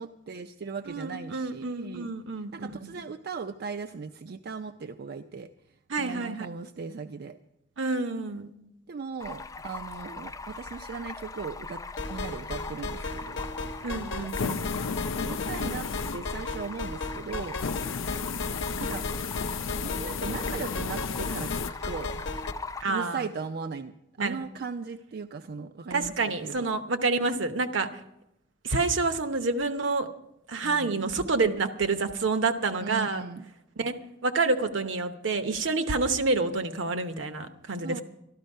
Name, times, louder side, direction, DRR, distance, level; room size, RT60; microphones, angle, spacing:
voice 1, 0.0-2.1 2.5-7.4 8.9-11.8 12.1-13.5 15.2-15.9 16.1-17.6 18.8-19.1 19.8-22.1 22.9-26.8 30.6-31.0 32.8-33.4 37.8-38.0, right 5 dB, 55° right, 8 dB, 0.4 m, -38 dB
voice 2, 0.9-2.9 5.9-6.5 7.8-8.5 13.8-14.7 22.8-23.2 24.2-24.4 25.9-28.0 28.6-30.1 30.5-33.2 33.8-33.9 34.2-38.0, right 3 dB, 70° right, 9 dB, 0.9 m, -28 dB
Stream, 9.2-22.8, left 3 dB, 15° left, 0.4 m, -41 dB
sound 1, 12.0-22.5, left 3 dB, 65° left, 0.9 m, -36 dB
sound 2, 14.3-16.6 17.6-21.7, left 5 dB, 85° left, 0.5 m, -33 dB
12.5 x 12.5 x 5.4 m, 0.85 s
head